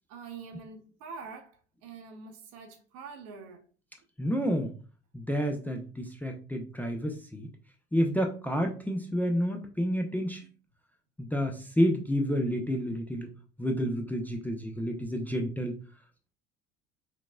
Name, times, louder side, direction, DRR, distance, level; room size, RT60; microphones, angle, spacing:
voice 1, 0.1-3.6, right 5 dB, 55° right, 1.0 m, -45 dB
voice 2, 4.2-4.7 5.1-7.5 7.9-10.5 11.2-13.3 13.6-15.8, equal, 5° left, 0.6 m, -29 dB
5.8 x 2.9 x 2.3 m
figure-of-eight pair, 60°, 33 cm